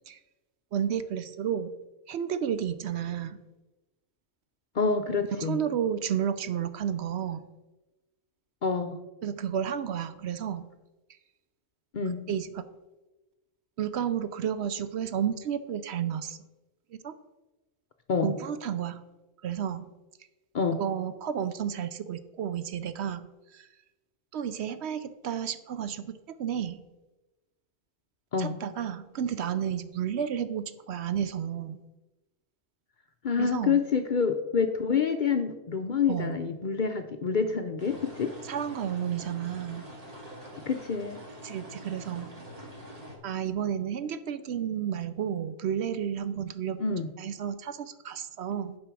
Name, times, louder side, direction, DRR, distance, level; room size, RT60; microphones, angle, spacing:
voice 1, 0.7-1.7 2.1-3.4 5.4-7.4 9.2-10.7 12.3-12.6 13.8-16.4 17.0-17.1 18.2-19.0 19.4-19.9 20.8-23.3 23.5-23.7 24.3-26.8 28.4-31.8 33.4-33.8 36.1-36.3 38.4-39.9 41.4-42.3 43.2-46.8 47.2-48.8, right 9 dB, 65° right, 12 dB, 0.8 m, -31 dB
voice 2, 4.7-5.6 8.6-9.0 11.9-12.2 18.1-18.3 20.5-20.8 28.3-28.6 33.2-38.3 40.7-41.2 46.8-47.1, left 5 dB, 50° left, 7 dB, 0.6 m, -27 dB
sound 1, 37.8-43.2, equal, 30° right, 2.0 m, -45 dB
9.0 x 5.3 x 6.1 m, 1.1 s
omnidirectional pair, 1.3 m